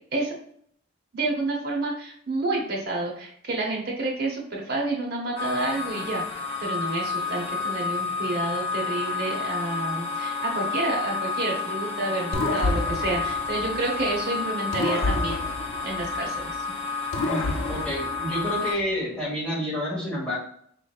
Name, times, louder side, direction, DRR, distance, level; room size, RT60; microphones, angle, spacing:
voice 1, 1.1-15.4 15.8-16.6, right 2 dB, 50° right, -1 dB, 1.0 m, -29 dB
sound 1, 5.4-18.7, left 4 dB, 30° left, 0.8 m, -30 dB
sound 2, 12.3-14.2 14.7-16.6 17.1-18.8, left 2 dB, 70° left, 0.5 m, -30 dB
voice 2, 17.2-20.4, equal, 5° left, -7 dB, 1.3 m, -29 dB
4.3 x 3.2 x 2.4 m, 0.64 s
head